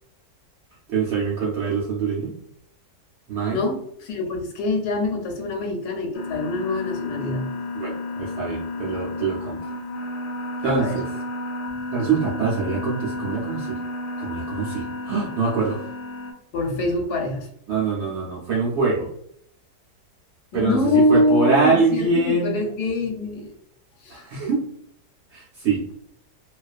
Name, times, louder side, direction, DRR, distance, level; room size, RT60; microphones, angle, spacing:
voice 1, 0.9-2.3 3.3-3.6 7.7-9.6 10.6-11.1 11.9-13.8 14.2-15.8 17.7-19.1 20.5-22.5 24.1-24.6 25.3-25.8, right 4 dB, 70° right, -5 dB, 0.6 m, -24 dB
voice 2, 3.5-7.5 10.6-11.0 16.5-17.5 20.5-23.5 24.0-24.2, left 2 dB, 85° left, 3 dB, 1.1 m, -24 dB
sound 1, 6.1-16.3, left 2 dB, 65° left, 0.7 m, -32 dB
2.4 x 2.3 x 2.3 m, 0.70 s
omnidirectional pair, 1.7 m